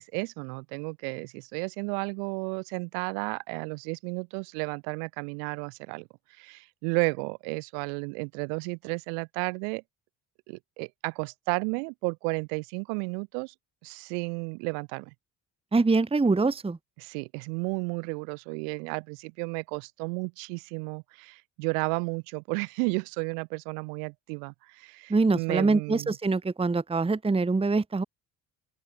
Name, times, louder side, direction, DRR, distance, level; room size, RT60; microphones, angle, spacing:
voice 1, 0.0-9.8 10.5-13.5 13.8-15.1 17.0-26.2, right 40 dB or more, 85° right, 7.0 m, -33 dB
voice 2, 15.7-16.8 25.1-28.0, right 3 dB, 15° right, 1.0 m, -24 dB
open air
supercardioid pair, 65°, 45 cm